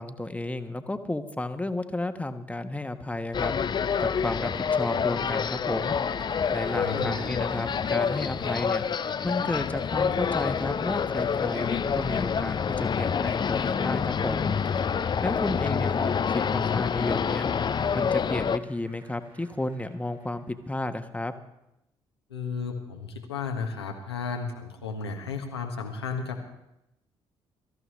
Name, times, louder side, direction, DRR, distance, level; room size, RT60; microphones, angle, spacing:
voice 1, 0.0-3.5 4.0-6.0 6.5-8.8 9.2-14.5 15.2-17.5 17.9-21.3, left 2 dB, 10° left, 8 dB, 1.3 m, -32 dB
sound 1, 3.3-18.6, left 6 dB, 35° left, 0.6 m, -27 dB
Cheering / Applause, 5.7-20.7, right 3 dB, 35° right, 2.7 m, -52 dB
voice 2, 6.7-7.2 22.3-26.4, left 5 dB, 85° left, 2 dB, 1.5 m, -33 dB
22.5 x 14.0 x 3.2 m, 0.86 s
figure-of-eight pair, 45°, 13 cm